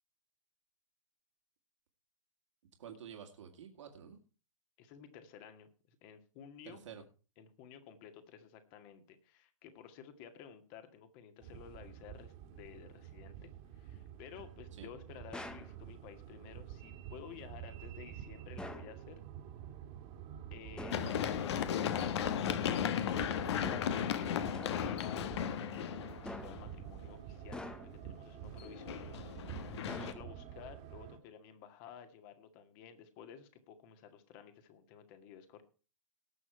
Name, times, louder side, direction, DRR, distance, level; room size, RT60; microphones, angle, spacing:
voice 1, 2.8-4.2 6.7-7.0 14.7-14.9 20.9-21.2 29.7-30.1, right 8 dB, 65° right, 3 dB, 2.3 m, -50 dB
voice 2, 4.8-5.7 6.0-6.8 7.4-19.2 20.5-35.6, left 8 dB, 40° left, 8 dB, 1.9 m, -54 dB
sound 1, 11.4-31.2, right 10 dB, 35° right, 2.0 m, -49 dB
sound 2, 15.3-15.8 18.6-19.0 20.8-21.1 23.6-24.0 24.5-24.9 26.2-26.7 27.5-28.1 29.9-30.5, left 2 dB, 5° left, 0.9 m, -46 dB
Run, 20.9-26.7 28.6-30.1, left 9 dB, 55° left, 1.2 m, -35 dB
18.5 x 6.4 x 4.6 m, 0.35 s
figure-of-eight pair, 115°, 17 cm